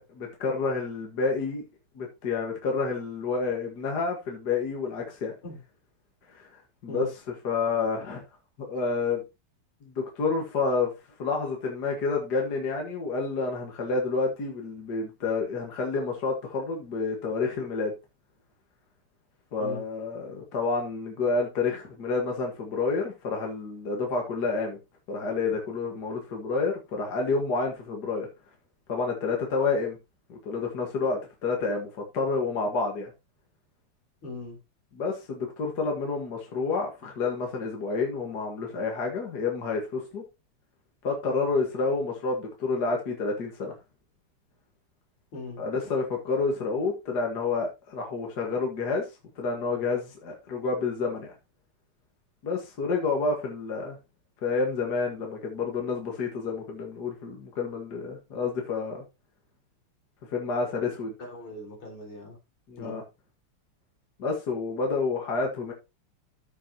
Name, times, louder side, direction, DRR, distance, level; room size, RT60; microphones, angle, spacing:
voice 1, 0.0-1.6 2.0-5.3 6.3-6.5 6.8-7.1 7.4-8.2 8.6-9.2 9.8-10.9 11.2-17.9 19.5-24.8 25.1-28.3 28.9-30.0 30.3-33.1 35.0-40.2 41.0-43.8 45.6-49.1 49.4-51.3 52.4-54.0 54.4-59.0 60.3-61.1 62.7-63.0 64.2-65.7, left 4 dB, 50° left, 2.1 m, -29 dB
voice 2, 34.2-34.6 45.3-45.6 61.2-62.4 62.8-63.0, left 2 dB, 75° left, 4.9 m, -39 dB
14.5 x 5.6 x 2.9 m
omnidirectional pair, 2.4 m